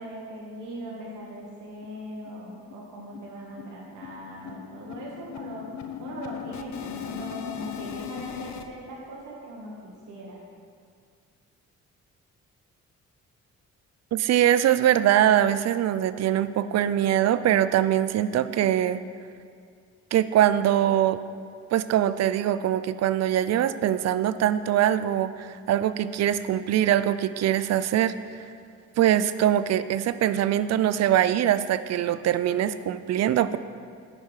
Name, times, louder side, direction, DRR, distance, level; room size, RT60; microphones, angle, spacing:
voice 1, 0.0-5.7 6.0-10.4, right 1 dB, 75° right, -4 dB, 1.4 m, -40 dB
sound 1, 1.4-1.5 1.8-1.9 2.3-2.4 2.7-8.7, left 9 dB, 65° left, 0.7 m, -38 dB
voice 2, 14.1-19.0 20.1-21.2 21.7-28.1 29.0-33.6, right 11 dB, 60° right, 13 dB, 0.5 m, -23 dB
10.0 x 5.6 x 4.8 m, 2.3 s
cardioid pair, 90°, 30 cm